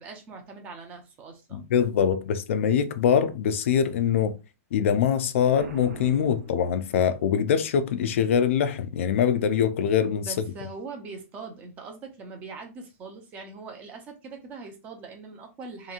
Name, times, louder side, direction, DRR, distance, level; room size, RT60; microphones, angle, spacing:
voice 1, 0.0-1.6 10.2-15.9, right 4 dB, 15° right, 0.4 m, -41 dB
voice 2, 1.5-4.4 4.7-10.3, left 8 dB, 50° left, 0.3 m, -23 dB
Boom, 5.5-7.4, right 5 dB, 85° right, 0.7 m, -42 dB
2.9 x 2.6 x 2.4 m
hypercardioid pair, 165°, 9 cm